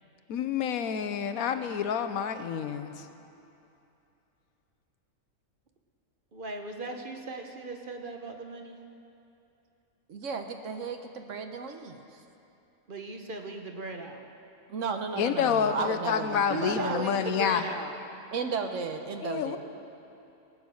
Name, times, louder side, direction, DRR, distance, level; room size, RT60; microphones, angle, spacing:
voice 1, 0.3-3.1 15.2-17.6 19.2-19.6, left 7 dB, 85° left, 9 dB, 1.2 m, -28 dB
voice 2, 6.3-8.8 12.9-14.3 16.5-18.0, right 2 dB, 40° right, 3 dB, 1.1 m, -37 dB
voice 3, 10.1-12.2 14.7-17.0 18.3-19.6, right 5 dB, 65° right, 5 dB, 1.2 m, -34 dB
19.0 x 8.9 x 6.3 m, 2.8 s
omnidirectional pair, 1.5 m